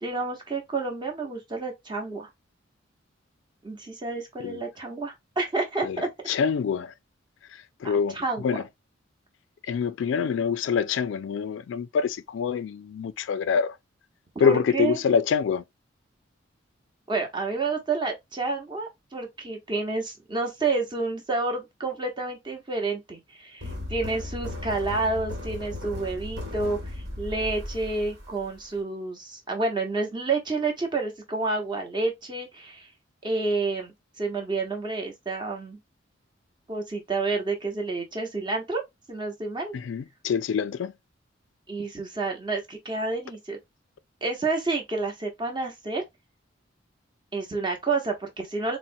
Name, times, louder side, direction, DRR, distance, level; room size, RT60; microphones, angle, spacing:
voice 1, 0.0-2.3 3.6-6.1 7.8-8.5 14.3-15.0 17.1-32.9 33.2-35.8 36.7-38.8 39.1-39.7 41.7-43.6 44.2-46.0 47.3-48.8, right 3 dB, 25° right, 0.8 m, -29 dB
voice 2, 6.3-6.9 7.8-8.2 8.4-8.6 9.7-13.7 14.4-15.6 39.7-40.9, left 6 dB, 75° left, 0.3 m, -25 dB
sound 1, 23.6-28.8, left 1 dB, 60° right, 1.3 m, -36 dB
4.1 x 2.1 x 2.6 m
head